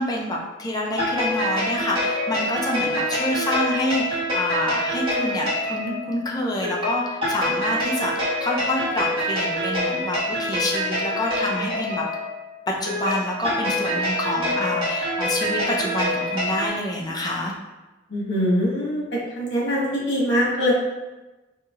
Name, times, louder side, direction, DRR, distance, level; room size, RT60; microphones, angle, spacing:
voice 1, 0.0-12.0 12.7-17.5, left 1 dB, 20° left, -2 dB, 0.5 m, -27 dB
sound 1, 0.8-16.7, left 1 dB, 30° right, 1.3 m, -26 dB
voice 2, 18.1-19.0 19.3-20.7, equal, 75° left, -4 dB, 1.2 m, -22 dB
4.4 x 2.8 x 2.3 m, 1.1 s
head